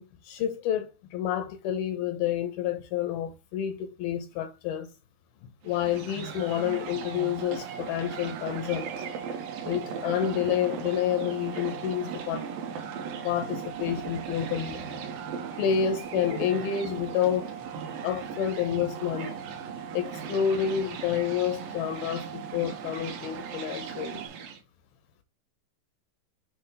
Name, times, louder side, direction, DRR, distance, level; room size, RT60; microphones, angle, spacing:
voice 1, 0.0-4.9 5.6-8.9 9.7-12.5 13.2-14.8 15.6-17.5 18.0-19.4 19.9-24.2, left 9 dB, 80° left, 2.2 m, -29 dB
sound 1, 5.6-24.6, right 6 dB, 70° right, 2.5 m, -38 dB
sound 2, 6.6-24.3, right 10 dB, 85° right, 3.4 m, -43 dB
7.9 x 3.1 x 5.6 m
omnidirectional pair, 5.1 m